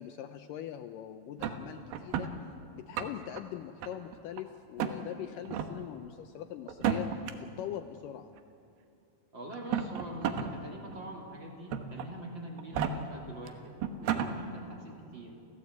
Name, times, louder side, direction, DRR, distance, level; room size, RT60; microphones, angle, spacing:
voice 1, 0.0-2.3 2.7-7.1 7.4-8.3, left 11 dB, 75° left, 8 dB, 2.1 m, -42 dB
sound 1, 1.4-2.3 2.8-3.4 3.8-4.4 4.8-5.0 5.5-5.7 6.7-7.3 8.4-8.5 9.5-10.5 10.9-11.0 11.7-12.1 12.6-12.9 13.5-13.6 13.8-14.3, right 9 dB, 80° right, 3.1 m, -32 dB
voice 2, 9.3-15.3, right 1 dB, 35° right, -1 dB, 3.1 m, -44 dB
30.0 x 15.0 x 8.2 m, 2.8 s
omnidirectional pair, 4.3 m